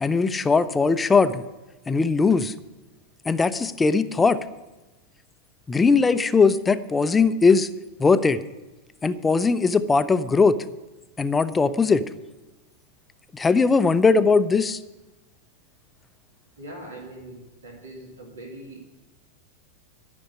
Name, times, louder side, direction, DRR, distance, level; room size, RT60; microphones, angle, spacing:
voice 1, 0.0-1.4 1.9-2.5 3.3-4.4 5.7-7.7 8.0-8.4 9.0-10.6 11.2-12.0 13.3-14.8, left 4 dB, 15° left, 12 dB, 0.6 m, -19 dB
voice 2, 16.6-19.0, right 1 dB, 70° right, -1 dB, 2.7 m, -41 dB
13.0 x 6.2 x 9.7 m, 1.1 s
figure-of-eight pair, 90°, 0 cm